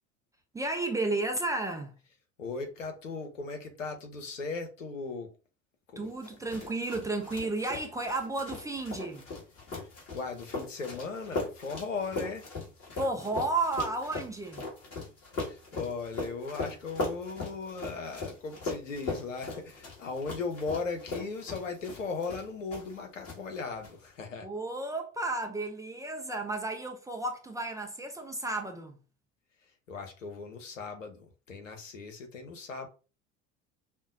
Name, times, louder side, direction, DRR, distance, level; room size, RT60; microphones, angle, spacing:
voice 1, 0.5-1.9 6.0-9.3 13.0-14.7 24.4-29.0, right 2 dB, 10° right, 0.4 m, -33 dB
voice 2, 2.4-5.4 5.9-6.1 9.7-12.5 15.3-24.5 29.6-32.9, left 4 dB, 80° left, 0.9 m, -38 dB
sound 1, 6.2-23.0 23.2-23.9, left 3 dB, 40° left, 2.1 m, -39 dB
5.3 x 2.2 x 2.6 m
figure-of-eight pair, 65°, 38 cm